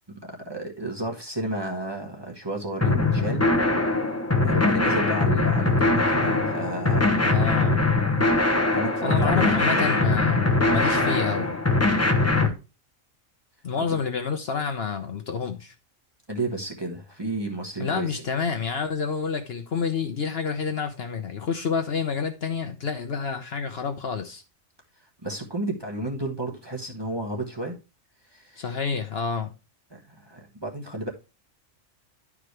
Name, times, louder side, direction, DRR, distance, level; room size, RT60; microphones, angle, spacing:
voice 1, 0.1-3.4 4.4-7.2 8.7-9.9 10.6-10.9 12.3-12.5 13.8-14.0 16.3-18.2 25.2-27.8 28.3-28.7 29.9-31.1, right 2 dB, 20° right, 1.1 m, -32 dB
sound 1, 2.8-12.5, left 2 dB, 15° left, 0.8 m, -22 dB
voice 2, 7.2-7.8 9.0-11.6 13.6-15.7 17.8-24.4 28.6-29.5, left 6 dB, 55° left, 0.9 m, -28 dB
11.0 x 4.9 x 3.2 m
omnidirectional pair, 1.4 m